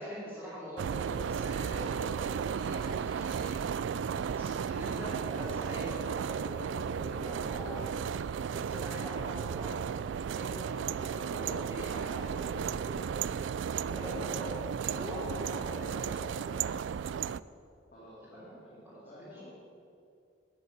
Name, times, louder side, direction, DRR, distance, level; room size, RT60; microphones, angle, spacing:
voice 1, 0.0-3.6 4.2-7.8 8.5-9.8 10.3-13.0 13.8-16.5 18.3-18.5 18.8-19.4, equal, 5° right, -11 dB, 3.3 m, -43 dB
sound 1, 0.8-17.4, right 7 dB, 70° right, 0.3 m, -34 dB
voice 2, 17.9-19.5, left 1 dB, 45° left, -6 dB, 2.5 m, -51 dB
12.5 x 6.7 x 8.6 m, 2.4 s
head